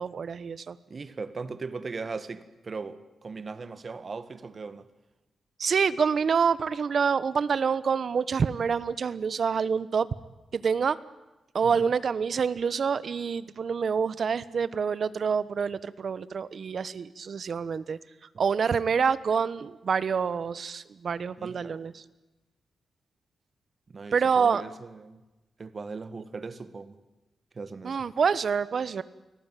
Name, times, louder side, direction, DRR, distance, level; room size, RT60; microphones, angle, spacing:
voice 1, 0.0-0.8 5.6-10.1 10.5-11.0 11.5-18.0 18.4-22.0 24.1-24.6 27.8-29.0, right 6 dB, 55° right, 1.1 m, -27 dB
voice 2, 0.9-4.9 11.6-11.8 21.4-21.8 23.9-25.2 25.6-27.0 27.5-28.0, right 4 dB, 40° right, 1.8 m, -38 dB
29.0 x 19.0 x 9.2 m
cardioid pair, 100°, 0 cm